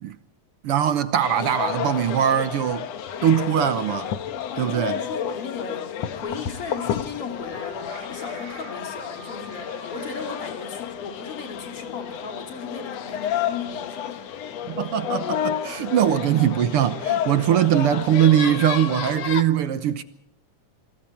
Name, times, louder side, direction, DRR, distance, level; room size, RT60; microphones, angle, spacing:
voice 1, 0.6-2.9 3.2-4.1 4.6-5.0 14.6-20.0, right 10 dB, 65° right, 1.6 m, -21 dB
sound 1, 1.2-19.4, left 9 dB, 65° left, 2.2 m, -31 dB
voice 2, 4.5-14.2, left 5 dB, 50° left, 3.8 m, -36 dB
Chicken rooster, 7.5-10.4, right 3 dB, 80° right, 4.4 m, -45 dB
26.5 x 25.5 x 4.5 m
omnidirectional pair, 3.3 m